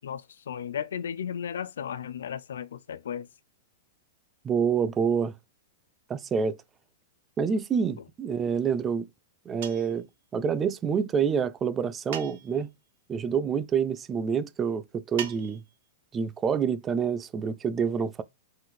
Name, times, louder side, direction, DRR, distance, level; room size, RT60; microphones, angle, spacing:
voice 1, 0.0-3.3, left 8 dB, 80° left, 0.5 m, -35 dB
voice 2, 4.4-5.3 6.1-6.6 7.4-9.1 9.5-10.1 10.3-12.7 13.1-15.6 16.1-18.2, right 6 dB, 20° right, 0.5 m, -27 dB
sound 1, 9.6-10.0 12.1-12.7 15.2-15.8, right 10 dB, 65° right, 1.0 m, -39 dB
4.1 x 4.0 x 3.2 m
hypercardioid pair, 125°, 0 cm